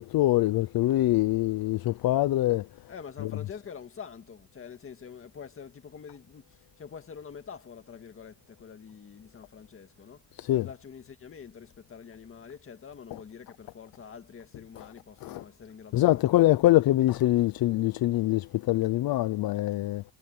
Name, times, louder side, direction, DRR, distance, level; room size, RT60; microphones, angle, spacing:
voice 1, 0.0-2.7 3.2-3.3 10.4-10.7 13.1-13.2 14.8-14.9 15.2-15.4 15.9-20.0, left 15 dB, 60° left, 0.6 m, -24 dB
voice 2, 2.9-10.2 10.5-16.8, left 6 dB, 30° left, 1.9 m, -46 dB
cardioid pair, 170°, 40 cm